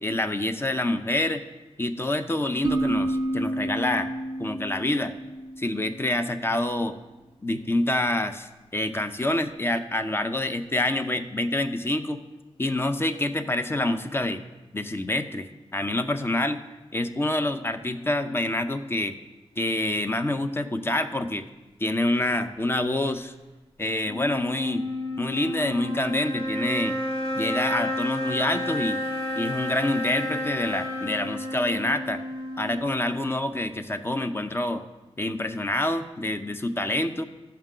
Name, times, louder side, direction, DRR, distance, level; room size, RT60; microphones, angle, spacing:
voice 1, 0.0-1.4 1.8-4.1 4.4-5.1 5.6-6.9 7.4-12.2 12.6-14.4 14.7-15.5 15.7-16.6 16.9-19.2 19.6-21.5 21.8-23.3 23.8-24.9 25.2-27.0 27.3-29.0 29.4-32.2 32.6-34.8 35.2-37.2, left 1 dB, 20° left, 9 dB, 0.5 m, -27 dB
sound 1, 2.6-6.2, right 1 dB, 45° right, 0.5 m, -30 dB
sound 2, 24.1-33.5, left 1 dB, 55° left, 1.8 m, -31 dB
13.0 x 5.7 x 3.7 m, 1.1 s
wide cardioid pair, 110°, 11 cm